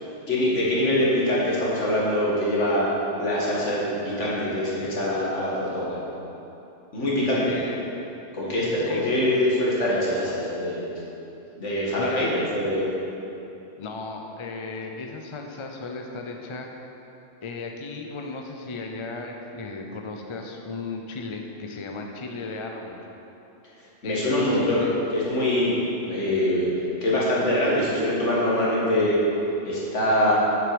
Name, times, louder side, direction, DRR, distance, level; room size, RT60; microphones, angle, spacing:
voice 1, 0.3-2.9 3.2-6.0 6.9-7.5 8.3-10.8 11.6-12.9 24.0-24.8 25.1-25.7 26.1-26.7 27.0-29.2 29.6-30.3, left 1 dB, 75° left, -6 dB, 2.2 m, -24 dB
voice 2, 7.3-7.8 8.6-9.2 12.0-12.3 13.8-16.7 17.4-23.0 24.0-24.9, left 3 dB, 35° left, 2 dB, 0.5 m, -35 dB
7.8 x 7.4 x 5.1 m, 2.9 s
omnidirectional pair, 1.3 m